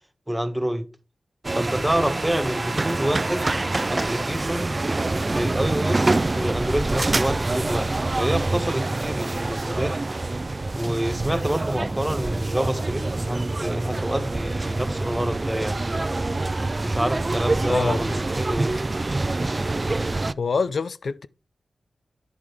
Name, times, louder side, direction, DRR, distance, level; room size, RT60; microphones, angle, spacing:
voice 1, 0.3-0.8 1.5-3.6 3.9-4.7 5.2-9.9 10.7-15.8 16.8-18.8, right 1 dB, 10° right, 1.4 m, -27 dB
sound 1, 1.4-20.3, right 2 dB, 40° right, 0.4 m, -26 dB
voice 2, 20.4-21.3, left 5 dB, 75° left, 0.3 m, -25 dB
9.0 x 6.2 x 3.5 m
cardioid pair, 45°, 0 cm